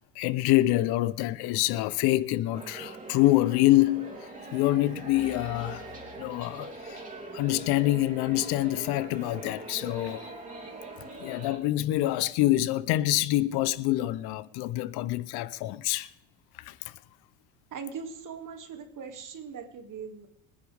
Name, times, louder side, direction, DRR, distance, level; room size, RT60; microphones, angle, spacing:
voice 1, 0.0-5.9 6.2-7.1 7.3-10.3 11.2-16.1 16.6-17.0, left 16 dB, 75° left, 0.8 m, -26 dB
sound 1, 2.5-11.6, right 2 dB, 20° right, 3.2 m, -42 dB
voice 2, 17.7-20.3, right 6 dB, 50° right, 2.6 m, -40 dB
25.0 x 9.9 x 3.5 m
supercardioid pair, 90°, 39 cm